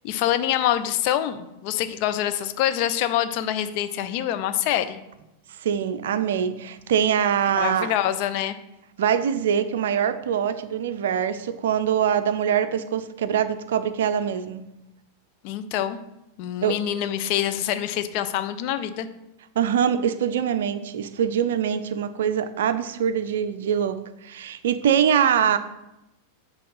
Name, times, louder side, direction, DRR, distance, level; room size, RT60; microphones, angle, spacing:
voice 1, 0.0-5.0 7.6-8.6 15.4-16.0 16.4-19.1, left 11 dB, 45° left, 0.4 m, -25 dB
voice 2, 5.6-7.9 9.0-14.7 16.6-16.8 19.6-25.6, right 8 dB, 60° right, 0.4 m, -23 dB
7.6 x 3.0 x 5.6 m
figure-of-eight pair, 90°, 0 cm